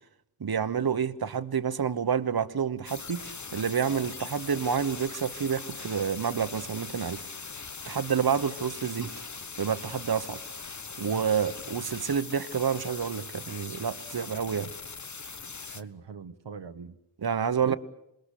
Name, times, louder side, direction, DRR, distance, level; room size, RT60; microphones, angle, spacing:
voice 1, 0.4-3.3 3.5-7.2 7.9-9.1 9.6-10.4 11.0-14.7 17.2-17.8, right 7 dB, 60° right, 1.2 m, -28 dB
sound 1, 2.8-15.8, left 4 dB, 40° left, 1.2 m, -41 dB
voice 2, 15.7-17.0 17.6-17.8, right 6 dB, 85° right, 1.2 m, -41 dB
27.0 x 20.5 x 8.4 m
cardioid pair, 50°, 42 cm